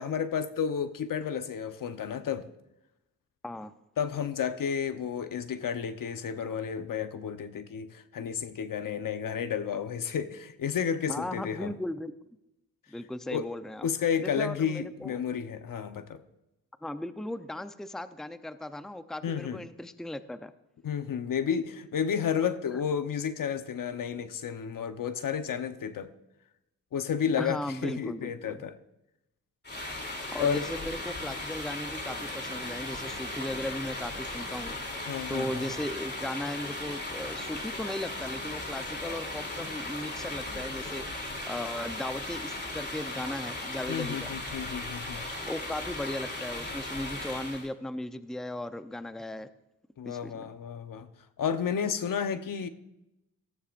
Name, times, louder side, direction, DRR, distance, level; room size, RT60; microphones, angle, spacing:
voice 1, 0.0-2.4 4.0-11.7 13.3-13.5 13.8-16.2 19.2-19.6 20.8-26.1 26.9-28.7 30.4-30.7 35.1-35.6 43.9-45.2 50.0-51.1 51.4-52.7, left 7 dB, 65° left, 10 dB, 1.0 m, -31 dB
voice 2, 11.1-12.1 12.9-13.9 14.2-15.2 16.8-20.5 22.7-22.8 27.4-28.6 30.3-34.8 35.3-44.3 45.5-49.5 50.0-50.5, left 1 dB, ahead, 11 dB, 0.7 m, -37 dB
sound 1, 29.6-47.7, left 2 dB, 30° left, 3.1 m, -37 dB
sound 2, 31.9-41.1, left 4 dB, 85° left, 2.4 m, -49 dB
17.5 x 14.0 x 2.6 m, 0.90 s
cardioid pair, 65°, 36 cm